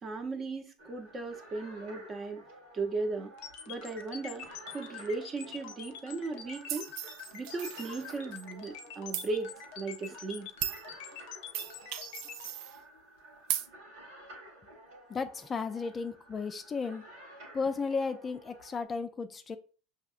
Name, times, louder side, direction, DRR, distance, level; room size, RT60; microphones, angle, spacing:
voice 1, 0.0-2.4 2.7-3.3 3.7-6.9 7.3-10.5, right 3 dB, 30° right, 0.8 m, -37 dB
sound 1, 0.8-18.8, right 1 dB, 85° right, 1.7 m, -52 dB
sound 2, 3.4-12.5, left 9 dB, 75° left, 0.6 m, -45 dB
sound 3, 6.7-8.4 9.1-9.3 10.0-10.1 10.6-10.8 11.5-12.8 13.5-13.7, right 11 dB, 70° right, 0.3 m, -37 dB
voice 2, 15.1-17.0 17.5-19.6, left 4 dB, 25° left, 0.4 m, -34 dB
5.6 x 2.8 x 2.4 m
supercardioid pair, 105°, 0 cm